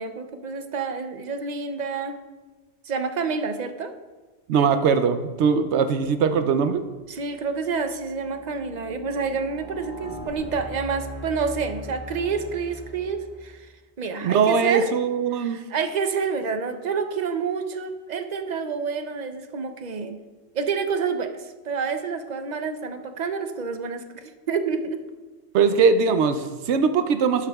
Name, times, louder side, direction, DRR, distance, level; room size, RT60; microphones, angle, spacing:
voice 1, 0.0-2.2 2.8-3.9 7.1-13.7 14.0-14.9 15.3-20.2 20.5-25.0, right 5 dB, 50° right, 7 dB, 0.6 m, -28 dB
voice 2, 4.5-6.8 14.2-15.6 25.5-27.5, right 6 dB, 80° right, 9 dB, 0.9 m, -21 dB
sound 1, 6.9-13.6, left 1 dB, 25° left, 2.5 m, -40 dB
11.5 x 8.3 x 2.3 m, 1.2 s
omnidirectional pair, 1.1 m